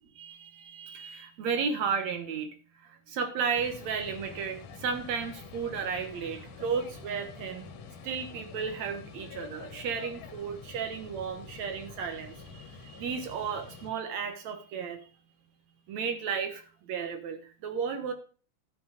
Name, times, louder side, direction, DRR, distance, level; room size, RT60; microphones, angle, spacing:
voice 1, 0.2-2.5 2.8-7.7 8.0-15.0 15.9-18.1, right 6 dB, 65° right, 7 dB, 2.3 m, -34 dB
sound 1, 3.5-13.9, left 5 dB, 70° left, 2.8 m, -47 dB
12.5 x 6.0 x 5.0 m, 0.39 s
omnidirectional pair, 3.7 m